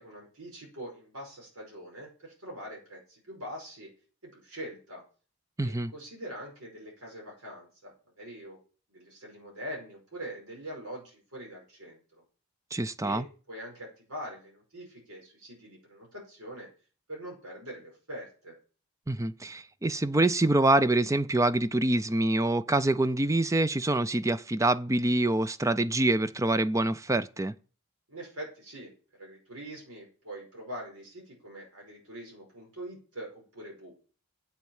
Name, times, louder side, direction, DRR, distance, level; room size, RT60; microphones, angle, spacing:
voice 1, 0.0-3.9 4.2-5.0 5.6-8.6 8.9-12.0 13.0-16.7 17.1-18.5 28.1-28.9 29.2-33.9, equal, 80° right, 5.2 m, -43 dB
voice 2, 5.6-5.9 12.7-13.2 19.1-27.5, right 2 dB, 15° right, 0.4 m, -26 dB
8.4 x 7.7 x 7.2 m
head